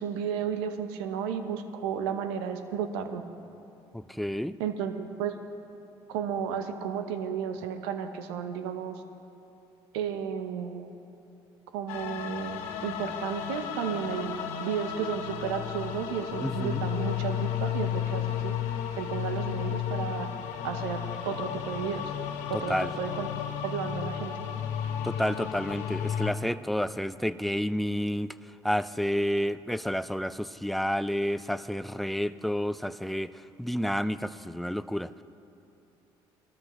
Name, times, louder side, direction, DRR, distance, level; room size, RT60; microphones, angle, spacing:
voice 1, 0.0-3.2 4.6-5.3 6.1-9.0 9.9-10.9 11.7-18.6 19.0-20.3 20.6-22.1 22.5-23.3 23.6-24.4, right 7 dB, 90° right, 8 dB, 0.8 m, -33 dB
voice 2, 3.9-4.6 16.4-16.9 22.5-22.9 25.0-28.3 28.6-35.1, equal, ahead, 14 dB, 0.4 m, -30 dB
sound 1, 11.9-26.3, left 9 dB, 80° left, 0.9 m, -33 dB
20.0 x 13.5 x 3.1 m, 2.8 s
supercardioid pair, 65°, 13 cm